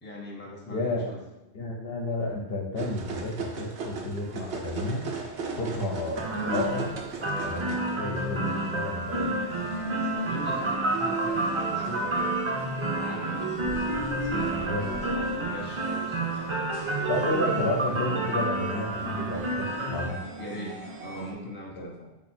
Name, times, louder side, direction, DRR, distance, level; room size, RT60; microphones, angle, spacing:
voice 1, 0.0-1.2 5.7-5.9 9.9-12.6 12.9-13.8 14.1-16.4 20.4-22.1, equal, 15° left, -1 dB, 0.5 m, -41 dB
voice 2, 0.7-1.2 1.5-5.1 5.5-6.9 7.4-9.3 14.5-15.1 17.1-20.2 21.7-21.9, left 2 dB, 65° left, -1 dB, 1.0 m, -31 dB
sound 1, 2.8-21.3, right 3 dB, 85° right, 1.0 m, -37 dB
sound 2, 6.2-20.1, right 2 dB, 35° right, 0.6 m, -30 dB
sound 3, 13.5-15.7, right 1 dB, 35° left, 0.8 m, -43 dB
4.1 x 2.9 x 4.3 m, 0.95 s
omnidirectional pair, 1.1 m